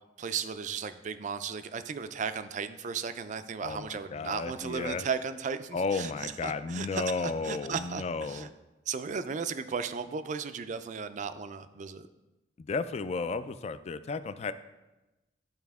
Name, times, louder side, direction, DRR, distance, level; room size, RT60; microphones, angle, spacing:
voice 1, 0.2-8.5 8.9-12.1, right 6 dB, 40° right, 11 dB, 0.4 m, -35 dB
voice 2, 3.6-5.0 5.7-8.5 12.6-14.5, left 4 dB, 35° left, 12 dB, 0.3 m, -33 dB
12.0 x 4.3 x 3.5 m, 1.1 s
head